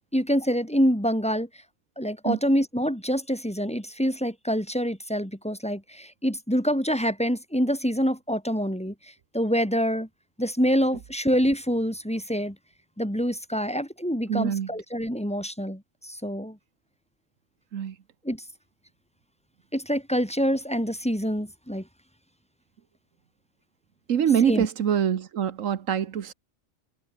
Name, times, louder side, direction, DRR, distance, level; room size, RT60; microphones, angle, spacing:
voice 1, 0.1-1.5 2.0-8.9 9.3-10.1 10.4-12.6 13.0-15.8 16.1-16.6 18.2-18.4 19.7-21.8 24.5-24.7, equal, 5° left, 4.2 m, -26 dB
voice 2, 14.3-14.7 17.7-17.9 24.1-26.3, right 8 dB, 85° right, 1.4 m, -24 dB
omnidirectional pair, 1.3 m